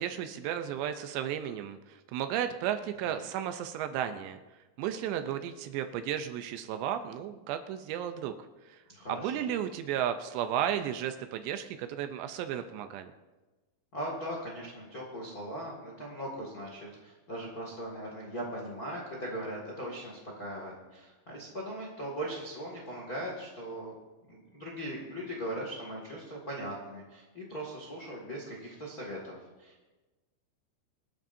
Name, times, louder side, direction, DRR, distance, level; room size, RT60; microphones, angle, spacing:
voice 1, 0.0-4.4 4.8-8.3 8.7-8.8 9.1-13.1, right 10 dB, 80° right, 8 dB, 2.6 m, -34 dB
voice 2, 8.9-9.5 13.9-23.9 24.3-29.9, right 1 dB, 85° left, -3 dB, 0.8 m, -39 dB
26.0 x 10.0 x 2.7 m, 1.2 s
omnidirectional pair, 5.5 m